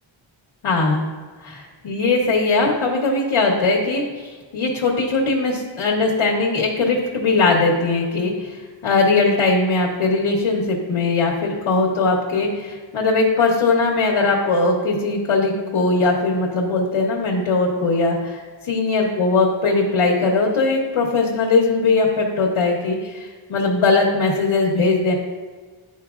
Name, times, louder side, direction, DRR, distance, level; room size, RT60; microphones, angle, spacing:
voice 1, 0.6-1.1 1.4-25.1, left 3 dB, 85° left, -2 dB, 1.0 m, -20 dB
10.5 x 4.4 x 2.4 m, 1.5 s
wide cardioid pair, 165°, 48 cm